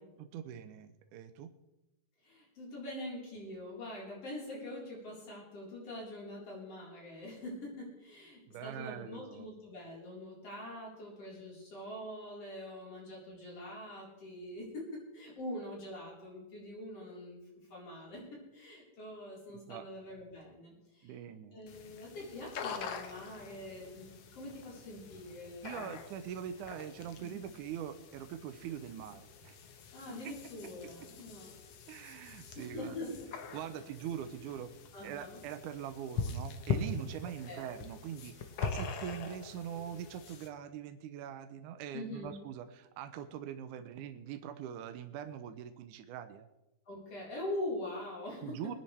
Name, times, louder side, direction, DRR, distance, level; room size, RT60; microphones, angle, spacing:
voice 1, 0.2-1.5 8.5-9.5 19.7-19.9 21.0-21.6 25.6-29.6 30.1-30.3 31.9-33.0 33.5-34.7 35.0-46.5 48.4-48.8, right 9 dB, 75° right, 9 dB, 1.9 m, -43 dB
voice 2, 2.2-17.4 17.7-21.2 21.5-26.0 27.2-27.4 29.9-31.5 32.6-33.3 33.8-33.9 34.9-35.4 37.5-37.8 38.6-38.7 41.9-42.4 46.9-48.8, left 1 dB, 45° left, -4 dB, 5.2 m, -44 dB
sound 1, 21.7-40.5, left 5 dB, 70° left, 1.4 m, -43 dB
22.5 x 10.0 x 3.4 m, 0.96 s
omnidirectional pair, 4.1 m